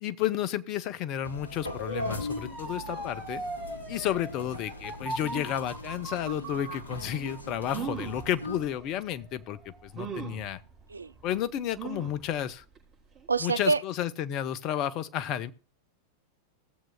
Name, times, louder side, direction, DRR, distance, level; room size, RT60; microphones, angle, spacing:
voice 1, 0.0-3.4 3.9-10.6 11.2-12.6 13.4-15.5, left 11 dB, 40° left, 0.7 m, -32 dB
sound 1, 1.2-8.6, left 1 dB, 75° left, 1.1 m, -39 dB
Motor vehicle (road) / Siren, 1.6-10.5 11.0-11.4, right 2 dB, 5° right, 4.8 m, -42 dB
sound 2, 7.7-8.3 9.0-9.1 9.9-10.5 11.8-12.2 12.7-12.8 13.1-13.2, right 8 dB, 25° right, 6.0 m, -37 dB
voice 2, 13.3-13.8, right 4 dB, 75° right, 0.4 m, -26 dB
18.0 x 7.5 x 2.2 m
figure-of-eight pair, 90°, 0 cm